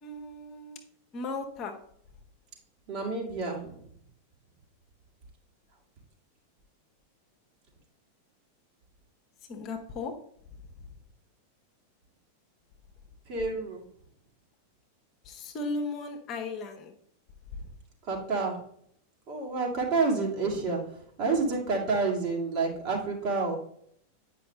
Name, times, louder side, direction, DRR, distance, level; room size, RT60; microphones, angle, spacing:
voice 1, 0.0-0.8 1.1-1.7 9.5-10.1 15.2-16.9 17.5-17.7, left 3 dB, 35° left, 4 dB, 1.2 m, -36 dB
voice 2, 2.9-3.8 13.3-13.8 18.1-18.6 19.3-23.6, right 4 dB, 45° right, 0 dB, 2.4 m, -29 dB
9.2 x 5.5 x 3.2 m, 0.65 s
figure-of-eight pair, 90°, 0 cm